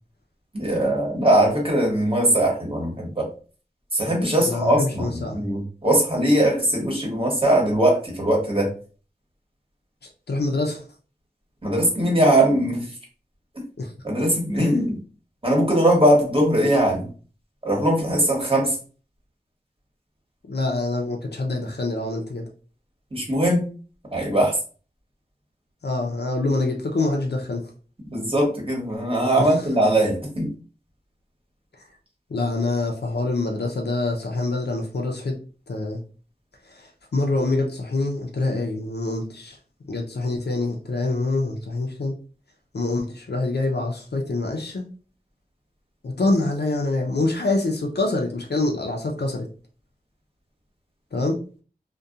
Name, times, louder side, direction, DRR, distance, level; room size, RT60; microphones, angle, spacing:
voice 1, 0.5-3.3 3.9-8.7 11.6-12.9 14.0-15.0 15.4-17.1 17.6-18.8 23.1-23.6 24.1-24.6 28.1-30.5, right 1 dB, 35° right, -1 dB, 1.1 m, -20 dB
voice 2, 4.4-5.4 10.3-10.8 13.8-13.9 14.6-14.7 20.5-22.5 25.8-27.6 29.4-29.6 32.3-35.4 35.7-36.0 36.7-39.6 39.9-42.1 42.7-44.8 46.0-49.5 51.1-51.4, left 2 dB, 85° left, 1 dB, 0.5 m, -25 dB
2.7 x 2.2 x 2.3 m, 0.38 s
wide cardioid pair, 45°, 17 cm